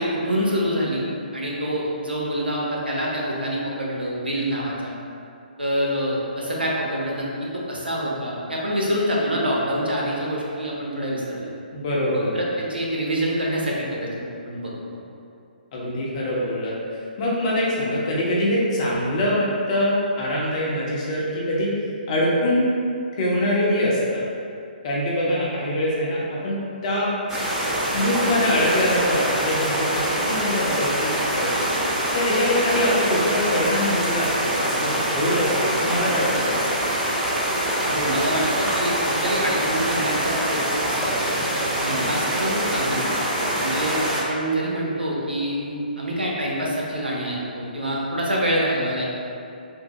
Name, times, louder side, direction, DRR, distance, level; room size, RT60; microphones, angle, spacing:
voice 1, 0.0-4.9 5.6-11.5 12.1-15.0 37.8-40.9 41.2-41.4 41.8-43.0 43.6-49.0, equal, 85° right, -4 dB, 0.7 m, -26 dB
voice 2, 11.7-12.3 15.7-16.7 17.2-21.7 22.1-22.6 23.2-24.2 24.8-27.1 27.9-31.7 32.1-36.6 41.9-42.1, left 1 dB, 35° left, -5 dB, 0.7 m, -24 dB
sound 1, 27.3-44.2, right 1 dB, 10° right, 0.4 m, -24 dB
3.6 x 2.0 x 3.0 m, 2.6 s
figure-of-eight pair, 135°, 5 cm